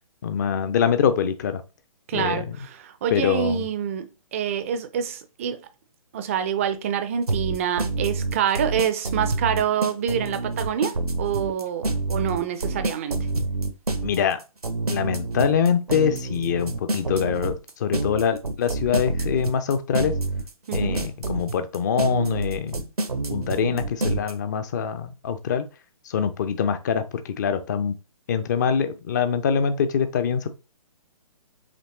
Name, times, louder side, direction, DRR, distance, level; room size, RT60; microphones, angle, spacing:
voice 1, 0.2-1.6 2.1-2.7 3.1-3.6 14.0-14.4 14.9-20.1 20.7-22.8 23.3-25.6 26.1-28.0 28.3-30.5, left 7 dB, 30° left, 0.5 m, -24 dB
voice 2, 2.1-5.6 6.1-13.3 20.7-21.0, right 8 dB, 25° right, 0.4 m, -26 dB
sound 1, 7.3-24.3, right 3 dB, 85° right, 0.7 m, -27 dB
5.1 x 3.1 x 2.9 m
figure-of-eight pair, 130°, 19 cm